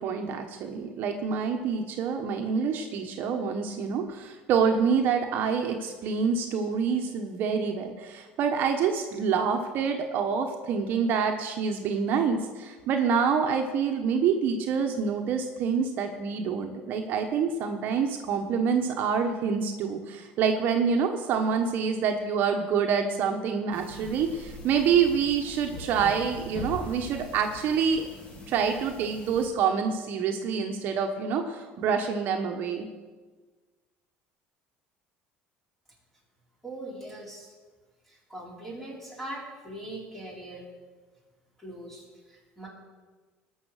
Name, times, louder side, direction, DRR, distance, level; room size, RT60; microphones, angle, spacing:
voice 1, 0.0-28.1 28.5-32.9, right 6 dB, 50° right, 4 dB, 1.1 m, -27 dB
sound 1, 23.7-29.5, left 1 dB, 25° left, 2.9 m, -42 dB
voice 2, 36.6-37.5 38.0-40.7 41.6-42.7, right 1 dB, 5° left, -3 dB, 3.7 m, -41 dB
19.5 x 6.5 x 6.4 m, 1.4 s
cardioid pair, 150°, 4 cm